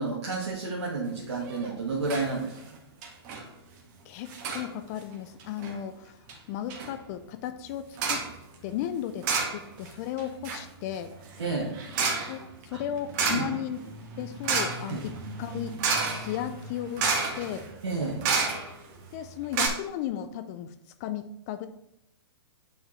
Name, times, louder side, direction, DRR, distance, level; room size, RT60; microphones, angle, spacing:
voice 1, 0.0-2.8 11.4-11.7 12.7-12.8 13.3-13.5 14.9-15.0 17.8-18.2, right 3 dB, 90° right, -3 dB, 1.5 m, -31 dB
sound 1, 1.4-1.7 2.1-2.3 2.6-2.7 3.0-3.4 4.3-4.7 5.4-5.7 6.3-6.4 6.7-6.9 8.0-8.3 9.2-9.9 10.2-18.9 19.2-19.3 19.5-19.7, right 4 dB, 40° right, 1.6 m, -31 dB
voice 2, 4.1-6.2 6.5-8.3 8.6-11.1 12.3-13.8 14.2-15.8 16.1-17.7 19.1-20.7 21.0-21.7, left 10 dB, 35° left, 10 dB, 0.4 m, -35 dB
8.8 x 4.5 x 3.1 m, 0.82 s
hypercardioid pair, 135°, 14 cm